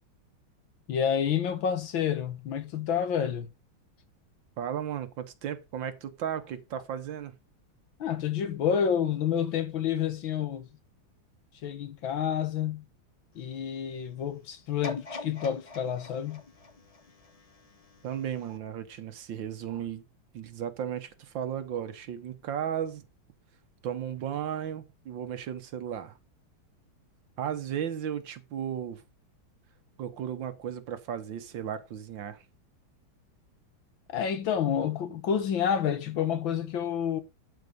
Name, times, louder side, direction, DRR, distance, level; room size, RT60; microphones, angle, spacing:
voice 1, 0.9-3.5 8.0-10.7 11.6-12.8 13.4-16.4 34.1-37.2, left 8 dB, 70° left, 1.9 m, -29 dB
voice 2, 4.6-7.3 18.0-20.0 20.3-23.0 23.8-26.2 27.4-29.0 30.0-32.4, right 9 dB, 70° right, 1.7 m, -35 dB
sound 1, 14.8-17.9 18.4-18.5, left 3 dB, 35° left, 0.6 m, -42 dB
12.0 x 4.7 x 5.3 m
omnidirectional pair, 2.3 m